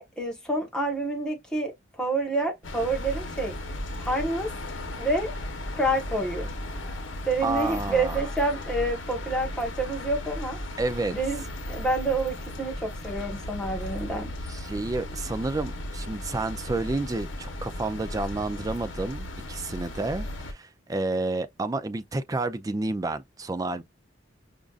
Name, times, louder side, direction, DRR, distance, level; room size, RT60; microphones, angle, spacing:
voice 1, 0.0-1.7 2.0-3.5 4.0-4.5 5.0-5.3 5.7-6.5 7.2-10.6 11.1-14.3, right 2 dB, 5° left, 1.2 m, -28 dB
sound 1, 2.6-20.5, left 1 dB, 80° left, 0.9 m, -36 dB
voice 2, 7.4-8.3 10.8-11.2 14.5-23.8, right 2 dB, 20° right, 0.3 m, -30 dB
5.1 x 2.4 x 2.4 m
head